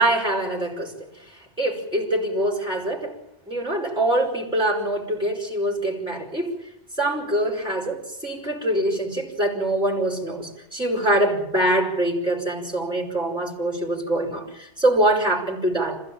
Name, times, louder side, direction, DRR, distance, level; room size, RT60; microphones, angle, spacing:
voice 1, 0.0-3.2 3.5-6.5 7.0-16.0, right 1 dB, 5° right, -1 dB, 5.3 m, -24 dB
26.5 x 16.0 x 8.8 m, 0.82 s
omnidirectional pair, 1.2 m